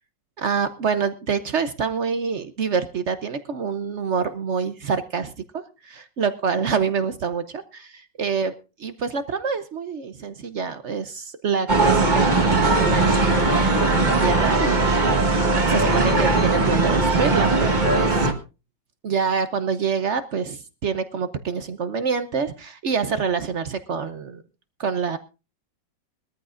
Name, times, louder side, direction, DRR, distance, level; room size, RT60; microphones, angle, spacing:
voice 1, 0.4-8.5 8.8-18.3 19.0-24.4 24.8-25.2, right 6 dB, 55° right, 11 dB, 0.8 m, -26 dB
sound 1, 11.7-18.3, right 2 dB, 25° right, 1.3 m, -19 dB
21.5 x 13.5 x 2.5 m, 0.31 s
omnidirectional pair, 2.0 m